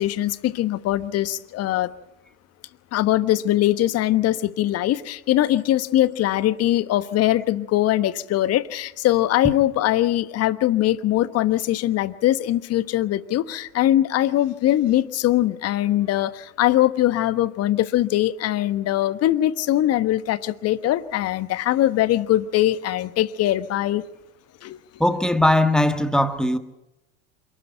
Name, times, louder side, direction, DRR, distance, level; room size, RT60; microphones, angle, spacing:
voice 1, 0.0-1.9 2.9-24.0 24.6-24.8, left 13 dB, 35° left, 1.2 m, -21 dB
voice 2, 25.0-26.6, left 1 dB, ahead, 1.6 m, -19 dB
27.5 x 13.0 x 8.9 m
figure-of-eight pair, 85°, 42 cm